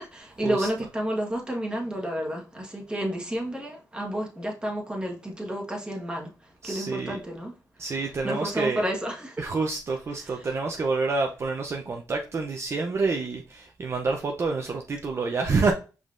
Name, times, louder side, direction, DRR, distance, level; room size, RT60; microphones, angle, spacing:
voice 1, 0.0-7.5 7.9-9.3 10.2-10.3, equal, 15° right, 1.4 m, -31 dB
voice 2, 6.6-7.2 7.8-8.9 9.4-15.7, right 4 dB, 40° right, 0.6 m, -28 dB
5.1 x 3.8 x 2.5 m
cardioid pair, 95°, 7 cm